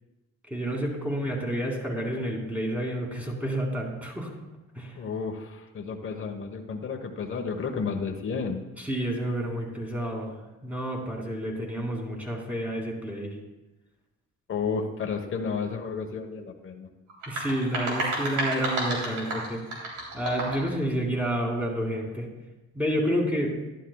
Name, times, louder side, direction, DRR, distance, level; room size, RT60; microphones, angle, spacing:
voice 1, 0.5-4.3 4.8-5.0 8.8-10.4 10.6-13.4 17.3-19.6 20.1-22.3 22.7-23.5, equal, 5° right, -1 dB, 2.5 m, -29 dB
voice 2, 4.9-8.6 14.5-16.9, left 5 dB, 40° left, 4 dB, 1.1 m, -32 dB
sound 1, 17.1-20.7, right 2 dB, 85° right, 3.1 m, -31 dB
11.5 x 11.5 x 2.3 m, 1.1 s
cardioid pair, 90°, 30 cm